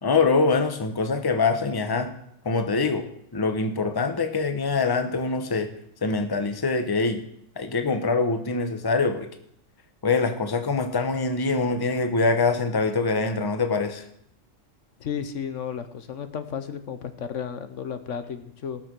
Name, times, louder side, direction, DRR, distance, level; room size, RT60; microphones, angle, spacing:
voice 1, 0.0-2.1 2.4-3.0 3.3-5.7 6.0-7.2 7.6-9.3 10.0-14.0, left 4 dB, 20° left, 8 dB, 0.9 m, -24 dB
voice 2, 15.0-18.8, left 7 dB, 70° left, 10 dB, 1.2 m, -33 dB
18.5 x 6.5 x 6.2 m, 0.72 s
omnidirectional pair, 1.3 m